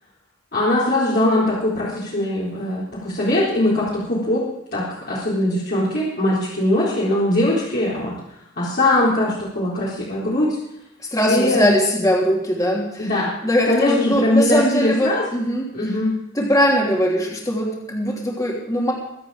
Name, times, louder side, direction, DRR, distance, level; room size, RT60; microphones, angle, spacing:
voice 1, 0.5-4.4 4.7-8.1 8.6-10.6 11.3-11.6 13.0-13.3 13.6-15.2 15.7-16.1, left 1 dB, 50° left, -8 dB, 4.1 m, -21 dB
voice 2, 11.1-15.9 16.3-18.9, equal, 15° left, -2 dB, 3.0 m, -21 dB
23.5 x 8.7 x 5.0 m, 0.84 s
head